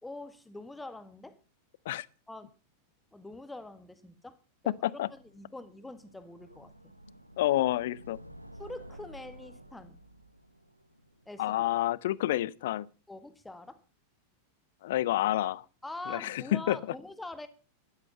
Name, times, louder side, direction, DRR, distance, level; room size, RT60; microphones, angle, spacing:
voice 1, 0.0-1.4 2.3-2.5 3.1-4.4 4.6-4.8 5.1-6.9 8.6-10.0 11.3-11.7 13.1-13.8 15.8-17.5, left 2 dB, 5° left, 1.7 m, -44 dB
sound 1, 4.9-12.0, equal, 90° right, 1.1 m, -52 dB
voice 2, 7.4-8.2 11.4-12.9 14.8-15.6 16.1-16.8, left 14 dB, 55° left, 0.6 m, -29 dB
13.0 x 12.5 x 5.6 m
figure-of-eight pair, 90°, 0 cm